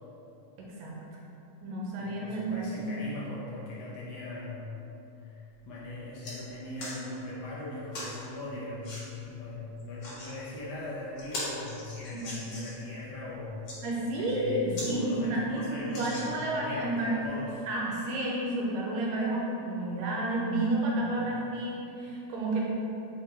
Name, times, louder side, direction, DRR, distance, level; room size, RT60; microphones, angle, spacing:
voice 1, 0.6-1.0 1.6-3.0 12.1-12.2 13.8-17.2 17.7-22.6, right 1 dB, 80° right, -4 dB, 1.6 m, -31 dB
voice 2, 2.0-4.9 5.2-13.6 14.2-17.7 21.0-21.4, left 2 dB, 75° left, -6 dB, 1.6 m, -40 dB
sound 1, 5.5-5.7 6.0-6.4 6.8-7.0 7.9-8.2 8.8-9.0 9.8-10.3 10.8-10.9 11.2-12.8 13.5-13.8 14.3-14.4 14.7-14.9 15.3-15.4 15.9-16.6 17.3-17.4, left 1 dB, 60° left, 1.9 m, -40 dB
5.1 x 2.2 x 4.2 m, 2.8 s
omnidirectional pair, 3.5 m